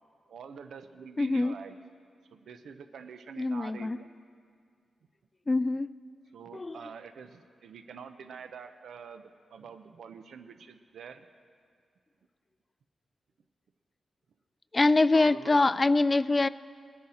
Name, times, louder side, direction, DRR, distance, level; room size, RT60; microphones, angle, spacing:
voice 1, 0.3-1.8 2.3-4.1 6.3-11.3 15.1-15.6, right 6 dB, 85° right, 9 dB, 0.6 m, -46 dB
voice 2, 1.2-1.6 3.4-4.0 5.5-5.9 6.5-6.8 14.7-16.5, left 2 dB, 30° left, 16 dB, 0.3 m, -24 dB
21.0 x 10.0 x 4.3 m, 2.1 s
cardioid pair, 85°, 0 cm